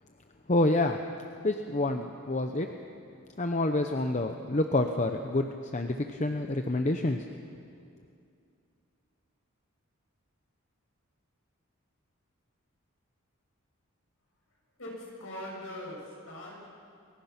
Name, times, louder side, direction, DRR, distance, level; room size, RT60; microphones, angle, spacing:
voice 1, 0.5-1.0 1.4-2.7 3.4-7.3, left 2 dB, 30° left, 5 dB, 0.8 m, -28 dB
voice 2, 14.8-16.0 16.3-16.7, left 1 dB, 60° left, -2 dB, 7.2 m, -41 dB
29.0 x 20.5 x 6.0 m, 2.4 s
head